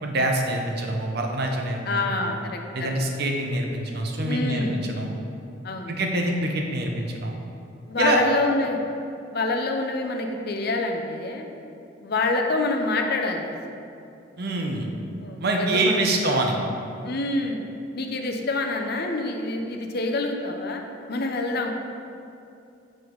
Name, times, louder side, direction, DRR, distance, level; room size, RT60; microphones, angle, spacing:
voice 1, 0.0-2.4 2.7-5.1 5.9-7.3 8.0-8.2 14.4-14.9 15.4-16.6, right 1 dB, 55° right, 2 dB, 0.8 m, -25 dB
voice 2, 1.9-2.6 4.2-4.8 5.6-5.9 7.9-8.8 9.3-11.5 12.0-13.4 15.2-16.1 17.0-17.6 17.9-20.8 21.1-21.7, left 2 dB, 55° left, 3 dB, 0.6 m, -26 dB
7.7 x 5.1 x 3.9 m, 2.6 s
head